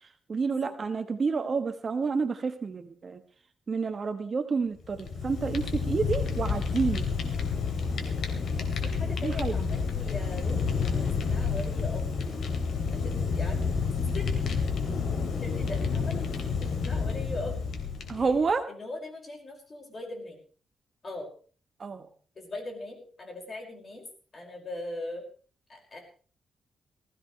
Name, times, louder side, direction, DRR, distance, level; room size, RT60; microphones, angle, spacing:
voice 1, 0.3-3.2 3.7-7.1 9.2-9.5 18.1-18.6 21.8-22.1, right 4 dB, 40° right, 8 dB, 1.3 m, -29 dB
Fire, 4.8-18.4, left 5 dB, 70° left, 3.0 m, -29 dB
voice 2, 8.6-12.3 12.9-13.9 14.1-14.3 15.3-16.3 16.6-17.8 18.2-18.4 18.7-20.4 21.0-21.3 22.4-24.0 24.3-25.2 25.7-26.0, left 2 dB, 35° left, 1 dB, 5.8 m, -40 dB
20.0 x 15.5 x 3.3 m, 0.41 s
cardioid pair, 110°, 0 cm